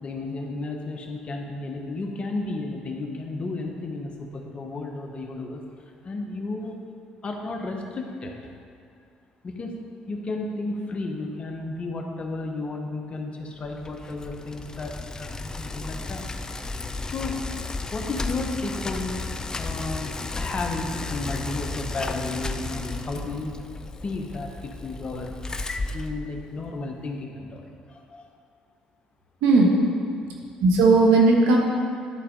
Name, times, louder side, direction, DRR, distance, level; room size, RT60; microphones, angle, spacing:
voice 1, 0.0-5.6 6.0-6.8 7.2-8.6 9.4-9.7 10.1-16.2 17.1-17.6 17.9-19.2 19.6-23.6 24.0-25.4 25.9-28.3 30.3-30.4, left 2 dB, 40° left, 2 dB, 1.2 m, -33 dB
Bicycle, 13.6-26.8, left 3 dB, 25° left, 0.5 m, -34 dB
voice 2, 29.4-29.7 30.6-31.6, right 3 dB, 85° right, 0 dB, 1.3 m, -16 dB
11.5 x 4.2 x 5.3 m, 2.2 s
supercardioid pair, 75°, 3 cm